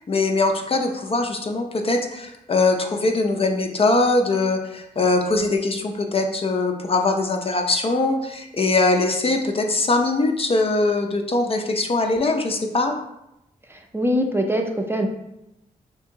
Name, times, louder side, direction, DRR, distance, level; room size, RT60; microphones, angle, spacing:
voice 1, 0.0-12.9, left 2 dB, 40° left, 4 dB, 0.5 m, -22 dB
voice 2, 13.7-15.1, equal, 15° right, 3 dB, 0.5 m, -23 dB
2.8 x 2.6 x 3.7 m, 0.86 s
cardioid pair, 55°, 16 cm